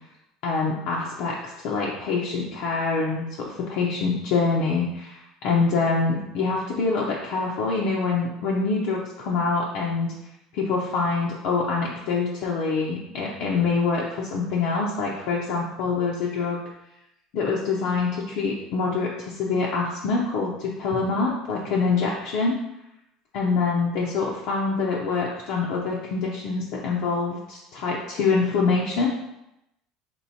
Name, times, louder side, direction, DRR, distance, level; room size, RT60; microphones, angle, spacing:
voice 1, 0.4-10.1 10.5-16.6 17.3-22.6 23.3-29.1, left 4 dB, 55° left, -3 dB, 0.5 m, -25 dB
4.4 x 3.0 x 2.8 m, 0.87 s
cardioid pair, 170°, 0 cm